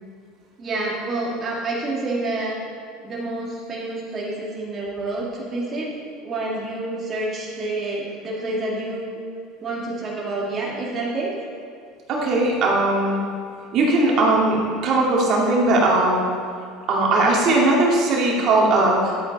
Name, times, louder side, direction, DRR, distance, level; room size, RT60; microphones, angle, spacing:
voice 1, 0.6-2.6 3.0-5.9 6.2-9.2 9.6-11.3, right 2 dB, 35° right, -5 dB, 2.2 m, -28 dB
voice 2, 12.1-13.2 13.7-16.2 16.9-19.2, right 2 dB, 50° right, -3 dB, 2.5 m, -19 dB
11.5 x 8.3 x 4.2 m, 2.3 s
supercardioid pair, 95°, 0 cm